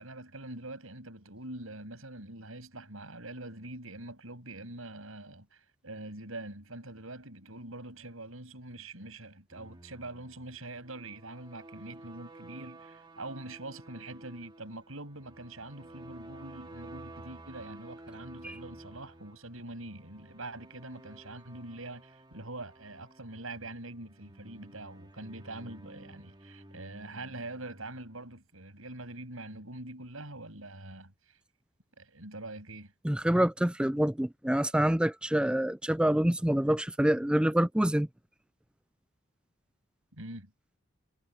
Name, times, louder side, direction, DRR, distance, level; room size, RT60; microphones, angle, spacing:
voice 1, 0.0-31.4 32.0-32.9 40.1-40.5, right 2 dB, 80° right, 7.9 m, -44 dB
sound 1, 9.5-28.3, right 1 dB, 20° right, 2.4 m, -52 dB
voice 2, 33.0-38.1, right 1 dB, 5° right, 0.4 m, -26 dB
head